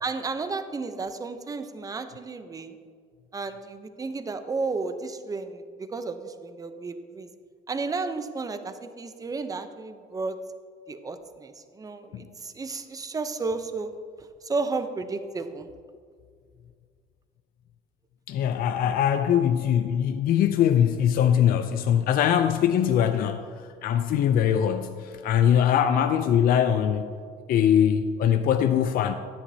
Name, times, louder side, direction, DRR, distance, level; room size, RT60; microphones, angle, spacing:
voice 1, 0.0-2.8 3.3-7.3 7.7-10.4 10.9-13.9 14.4-15.7, right 3 dB, 20° right, 9 dB, 0.6 m, -33 dB
voice 2, 18.3-23.5 23.8-27.1 27.5-29.2, left 9 dB, 60° left, 8 dB, 0.4 m, -22 dB
11.0 x 9.7 x 2.7 m, 2.1 s
cardioid pair, 110°, 17 cm